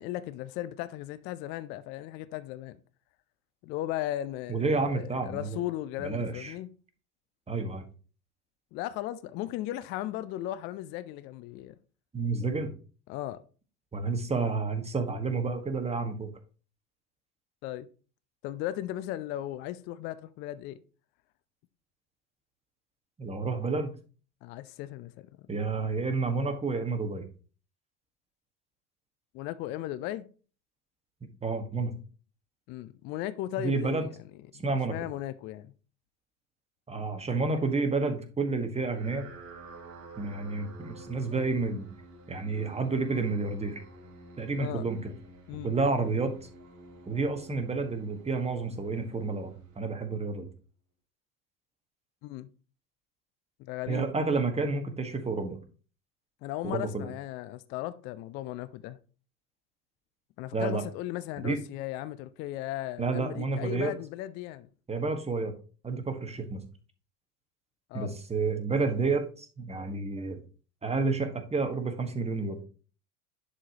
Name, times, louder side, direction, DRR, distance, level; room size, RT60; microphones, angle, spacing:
voice 1, 0.0-2.8 3.6-6.7 8.7-11.8 13.1-13.4 17.6-17.9 18.4-20.8 24.4-25.3 29.3-30.2 32.7-34.1 34.9-35.7 44.6-44.8 45.5-45.7 52.2-52.5 53.6-54.1 56.4-59.0 60.4-64.7 67.9-68.2, left 14 dB, 25° left, 0.3 m, -36 dB
voice 2, 4.5-5.6 6.0-6.5 7.5-7.8 12.1-12.7 13.9-16.3 23.2-23.9 25.5-27.2 31.4-31.9 33.6-34.1 34.6-34.9 36.9-39.3 40.2-41.9 42.3-43.8 44.4-45.1 45.6-46.5 47.1-50.5 53.9-55.6 56.6-57.1 60.5-60.8 61.4-61.6 63.0-63.9 64.9-65.5 65.8-66.6 67.9-70.4 70.8-72.6, right 3 dB, 15° right, 1.5 m, -30 dB
sound 1, 38.8-50.3, right 2 dB, 40° right, 2.8 m, -50 dB
10.5 x 4.9 x 2.9 m
figure-of-eight pair, 80°, 48 cm